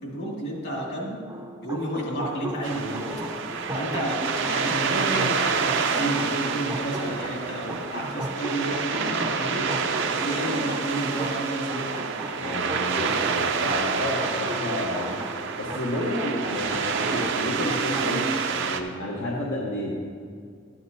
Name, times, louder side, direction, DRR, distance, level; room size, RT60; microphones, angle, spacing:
voice 1, 0.0-1.3 1.6-3.1 3.7-9.7 10.1-11.9, right 1 dB, 60° left, -3 dB, 2.2 m, -31 dB
sound 1, 1.3-18.1, right 1 dB, 15° right, 0.5 m, -36 dB
sound 2, 2.6-18.8, right 5 dB, 65° right, 0.6 m, -28 dB
sound 3, 3.0-8.3 8.7-9.0 9.5-10.9 11.1-11.2 11.5-12.1, left 2 dB, 25° left, 0.7 m, -42 dB
voice 2, 12.4-15.1 15.6-19.9, left 1 dB, 75° left, -4 dB, 1.0 m, -30 dB
12.5 x 8.4 x 2.7 m, 2.2 s
head